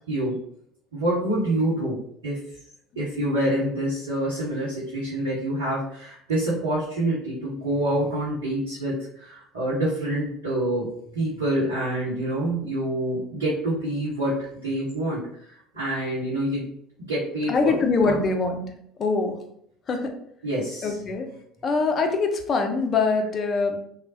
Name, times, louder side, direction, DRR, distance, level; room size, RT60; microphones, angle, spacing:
voice 1, 0.1-0.4 0.9-2.0 2.2-2.4 3.0-10.9 11.1-16.7 17.1-18.2 20.4-21.0, right 1 dB, 75° right, -8 dB, 0.8 m, -27 dB
voice 2, 17.5-18.7 19.0-19.4 19.9-20.1 20.8-21.3 21.6-23.8, left 4 dB, 35° left, 5 dB, 0.5 m, -23 dB
3.1 x 2.1 x 2.6 m, 0.69 s
figure-of-eight pair, 60°, 0 cm